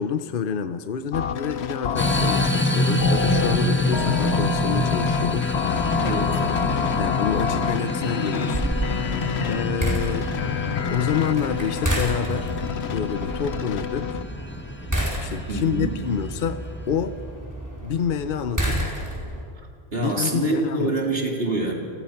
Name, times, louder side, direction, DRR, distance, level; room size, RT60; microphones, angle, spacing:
voice 1, 0.0-6.0 7.0-10.3 10.9-12.5 12.9-14.1 15.2-16.6 16.9-17.2 17.8-18.9 19.9-20.9, left 7 dB, 55° left, 10 dB, 0.9 m, -28 dB
sound 1, 1.1-14.2, left 7 dB, 75° left, 1.1 m, -28 dB
sound 2, 2.0-17.0, equal, 10° left, 1.4 m, -27 dB
voice 2, 6.0-6.4 15.5-16.0 19.9-21.7, right 2 dB, 65° right, 0 dB, 3.5 m, -25 dB
sound 3, 8.5-19.4, right 1 dB, 15° right, 4.6 m, -30 dB
29.5 x 20.5 x 5.8 m, 2.3 s
omnidirectional pair, 1.1 m